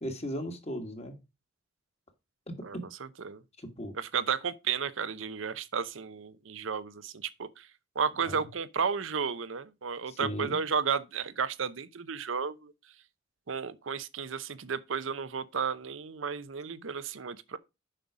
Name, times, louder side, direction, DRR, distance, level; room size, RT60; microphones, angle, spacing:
voice 1, 0.0-1.2 2.5-2.8 3.6-3.9 8.2-8.5 10.1-10.6, equal, 35° left, 1.8 m, -37 dB
voice 2, 3.9-7.7 8.0-12.7 13.5-17.6, right 6 dB, 85° right, 0.7 m, -33 dB
7.6 x 5.6 x 4.8 m
head